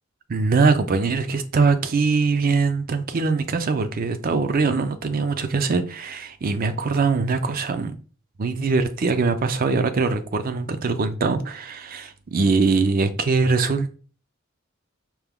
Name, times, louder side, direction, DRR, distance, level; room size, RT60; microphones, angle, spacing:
voice 1, 0.3-7.9 8.4-13.9, right 4 dB, 45° right, 0.4 m, -22 dB
4.5 x 2.2 x 3.5 m
head